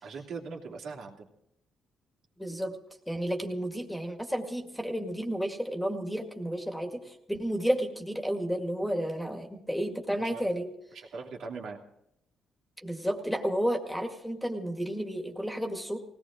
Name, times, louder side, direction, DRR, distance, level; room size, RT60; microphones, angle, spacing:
voice 1, 0.0-1.3 10.2-10.4 10.9-11.8, right 4 dB, 70° right, -1 dB, 3.0 m, -40 dB
voice 2, 2.4-2.8 3.1-10.7 12.8-16.0, equal, ahead, 4 dB, 2.1 m, -32 dB
19.5 x 17.5 x 3.8 m, 0.78 s
cardioid pair, 90°, 0 cm